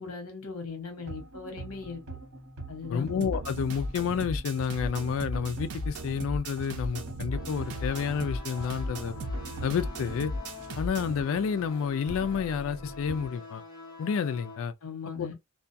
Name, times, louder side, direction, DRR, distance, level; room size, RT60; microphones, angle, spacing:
voice 1, 0.0-2.0 2.7-3.1 14.8-15.3, left 5 dB, 80° left, 0.9 m, -38 dB
sound 1, 1.0-13.3, right 2 dB, 75° right, 1.2 m, -44 dB
voice 2, 2.9-9.2 9.6-10.3 10.8-13.6 14.0-14.7 15.2-15.3, left 6 dB, 60° left, 0.3 m, -30 dB
sound 2, 3.2-11.2, equal, 90° right, 0.6 m, -36 dB
sound 3, 7.3-14.6, left 4 dB, 20° left, 0.8 m, -46 dB
2.2 x 2.2 x 2.5 m
head